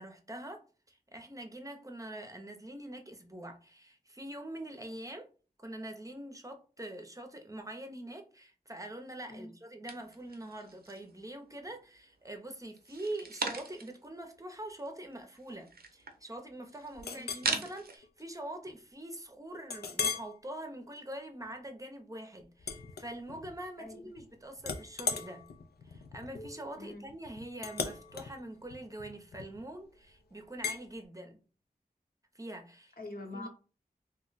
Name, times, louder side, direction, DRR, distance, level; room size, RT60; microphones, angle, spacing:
voice 1, 0.0-5.3 5.6-25.4 25.8-31.4 32.3-32.9 33.3-33.5, right 1 dB, 20° right, 0.6 m, -44 dB
sound 1, 9.9-11.2 11.6-12.3 12.8-14.1 14.4-14.5 14.7-18.0, right 4 dB, 75° right, 0.6 m, -39 dB
Chink clink, 17.0-17.5 18.0-18.2 18.7-18.8 19.7-20.3 20.9-21.1 22.6-23.6 23.9-24.3 24.6-29.7 30.6-30.8, left 5 dB, 85° left, 0.4 m, -38 dB
voice 2, 17.0-17.3 23.8-24.1 26.8-27.1 33.0-33.5, left 2 dB, 70° left, 0.8 m, -44 dB
2.6 x 2.1 x 3.9 m
wide cardioid pair, 65°, 16 cm